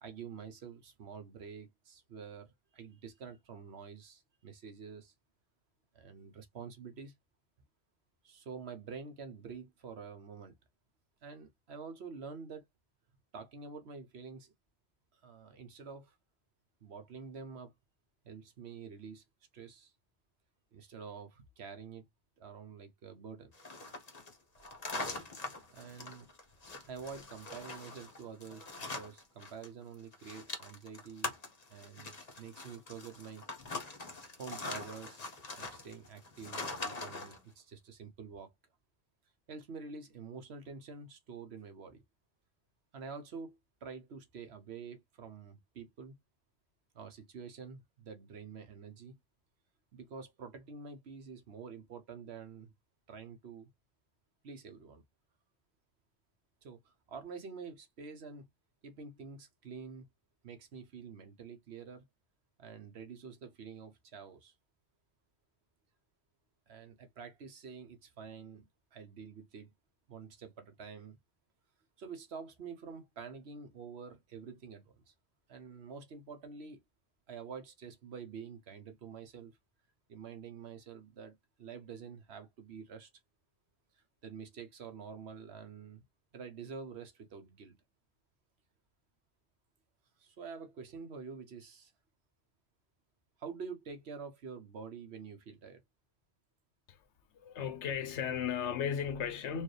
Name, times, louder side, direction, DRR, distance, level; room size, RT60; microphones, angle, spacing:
voice 1, 0.0-5.1 5.9-7.1 8.2-10.5 11.2-12.7 13.3-14.5 15.1-16.2 16.8-17.7 18.2-19.2 19.5-19.9 20.7-22.0 22.4-23.5 25.7-26.3 26.9-31.3 31.7-32.1 32.4-33.4 34.4-35.2 35.6-38.5 39.5-42.0 42.9-46.2 46.9-49.2 49.9-52.7 53.1-53.7 54.4-55.0 56.6-58.5 58.8-60.1 60.4-62.0 62.6-64.5 66.7-69.7 70.1-71.2 72.0-75.1 75.5-76.8 77.3-79.6 80.1-83.1 83.9-86.0 86.3-87.8 90.2-91.9 93.4-95.8, right 5 dB, 65° right, 1.1 m, -47 dB
sound 1, 23.5-29.7 29.9-37.4, left 3 dB, 35° left, 1.1 m, -43 dB
voice 2, 97.3-99.6, left 8 dB, 75° left, 1.0 m, -35 dB
4.6 x 2.6 x 3.2 m
omnidirectional pair, 1.2 m